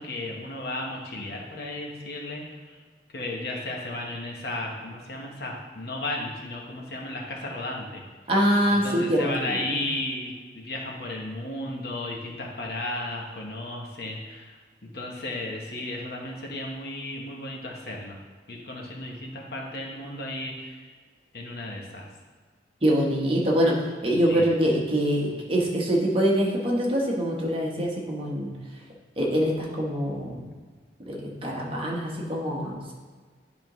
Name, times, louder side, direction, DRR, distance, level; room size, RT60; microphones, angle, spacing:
voice 1, 0.0-2.8 3.1-8.0 8.7-18.2 18.5-20.9 21.3-22.0 24.3-24.5, left 1 dB, 60° left, -1 dB, 1.1 m, -34 dB
voice 2, 8.3-9.8 22.8-23.7 24.0-28.5 29.2-30.5 31.1-32.9, equal, 30° right, -3 dB, 1.1 m, -24 dB
10.5 x 3.7 x 3.1 m, 1.5 s
head